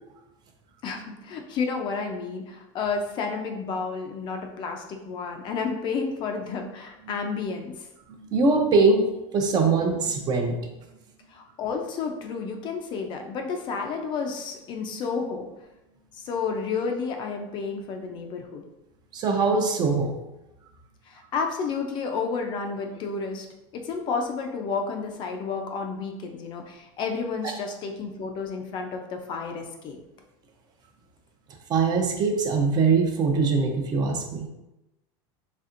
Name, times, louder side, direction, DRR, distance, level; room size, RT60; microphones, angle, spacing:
voice 1, 0.8-7.9 11.3-15.5 16.2-18.6 21.1-23.5 23.7-30.0, left 5 dB, 35° left, 3 dB, 0.5 m, -31 dB
voice 2, 8.1-9.1 9.3-10.7 19.1-20.1 31.7-34.5, right 4 dB, 30° right, 3 dB, 0.6 m, -22 dB
4.2 x 3.4 x 2.5 m, 0.92 s
supercardioid pair, 155°, 13 cm